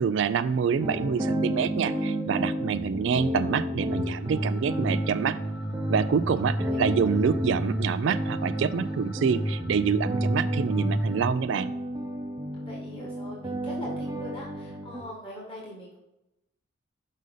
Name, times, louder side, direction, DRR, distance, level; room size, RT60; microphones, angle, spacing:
voice 1, 0.0-5.4 5.9-11.7, right 6 dB, 65° right, 13 dB, 0.3 m, -26 dB
sound 1, 0.8-15.0, equal, 20° right, 0.7 m, -32 dB
sound 2, 3.9-11.3, right 1 dB, 55° left, 1.3 m, -31 dB
voice 2, 6.5-7.0 12.6-16.0, equal, 25° left, -4 dB, 1.7 m, -42 dB
6.4 x 5.3 x 3.8 m, 0.88 s
head